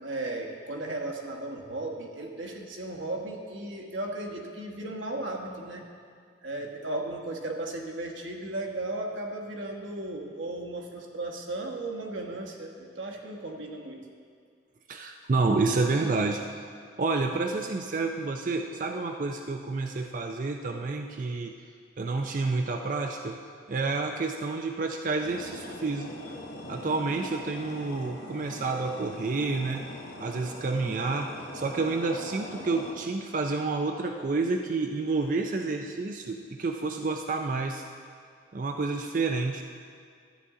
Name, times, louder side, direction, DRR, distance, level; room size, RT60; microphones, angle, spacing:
voice 1, 0.0-5.8 6.4-14.0, right 2 dB, 90° right, 1 dB, 1.2 m, -35 dB
voice 2, 14.9-16.4 17.0-21.5 22.0-23.4 23.7-26.3 26.7-29.8 30.2-37.8 38.5-39.6, right 3 dB, 45° right, 4 dB, 0.4 m, -29 dB
sound 1, 25.2-32.9, left 1 dB, 65° left, 1.1 m, -42 dB
13.0 x 8.2 x 3.7 m, 2.2 s
head